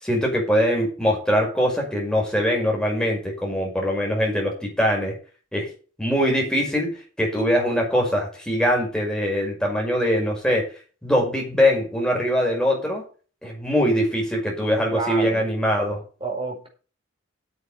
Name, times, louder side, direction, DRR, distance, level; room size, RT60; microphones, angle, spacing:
voice 1, 0.0-5.1 5.5-5.7 6.0-10.7 11.0-13.0 13.4-16.0, equal, 5° left, -1 dB, 5.8 m, -22 dB
voice 2, 14.9-15.5 16.2-16.7, right 3 dB, 30° right, 1 dB, 5.1 m, -29 dB
9.8 x 7.9 x 6.7 m, 0.36 s
head